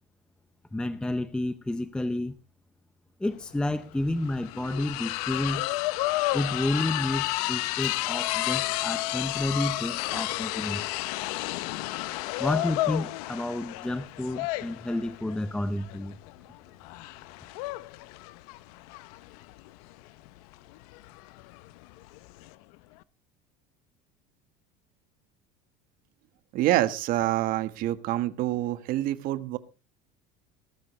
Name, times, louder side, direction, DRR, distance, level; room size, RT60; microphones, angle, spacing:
voice 1, 0.7-2.4 3.2-5.7 6.3-10.8 12.4-16.1, left 1 dB, 5° left, 0.6 m, -30 dB
sound 1, 3.3-3.4 3.7-22.5, left 19 dB, 85° left, 0.8 m, -32 dB
voice 2, 26.5-29.6, right 14 dB, 50° right, 1.4 m, -26 dB
19.5 x 13.0 x 3.2 m
cardioid pair, 165°, 19 cm